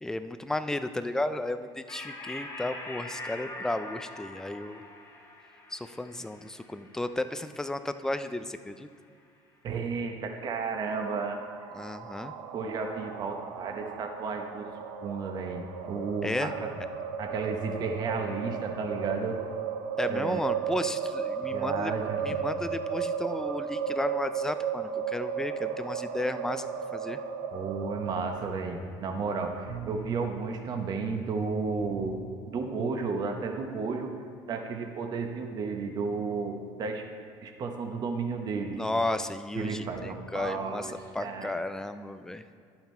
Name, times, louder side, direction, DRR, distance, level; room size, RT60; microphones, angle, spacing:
voice 1, 0.0-4.8 5.7-8.9 11.7-12.3 16.2-16.5 20.0-21.9 22.2-27.2 38.8-42.4, left 2 dB, 5° left, 10 dB, 0.3 m, -33 dB
sound 1, 1.9-8.8, left 2 dB, 25° left, 1.5 m, -44 dB
voice 2, 9.6-11.4 12.5-14.7 15.0-16.7 17.2-19.4 20.1-20.6 21.5-22.5 27.5-34.1 34.5-37.0 37.4-38.8 39.5-41.6, right 4 dB, 40° right, 4 dB, 0.9 m, -33 dB
sound 2, 10.6-28.4, right 7 dB, 90° right, 0.7 m, -35 dB
11.0 x 5.8 x 4.4 m, 2.3 s
cardioid pair, 130°, 11 cm